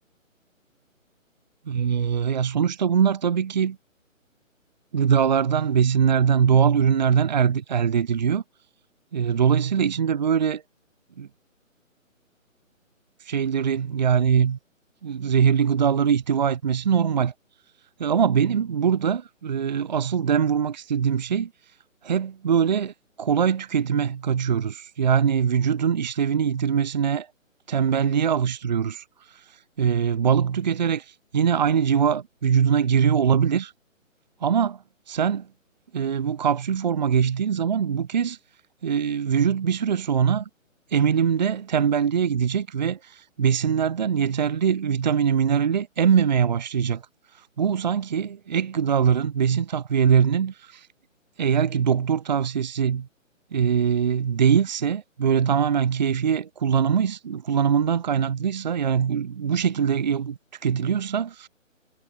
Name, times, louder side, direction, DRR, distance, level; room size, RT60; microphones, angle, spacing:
voice 1, 1.7-3.8 4.9-8.4 9.1-10.6 11.2-11.3 13.2-14.6 15.0-17.3 18.0-21.5 22.0-27.3 27.7-33.7 34.4-35.5 35.9-38.4 38.8-40.5 40.9-47.0 47.3-50.9 51.4-53.1 53.5-61.5, right 7 dB, 35° right, 1.1 m, -22 dB
hypercardioid pair, 165°, 40 cm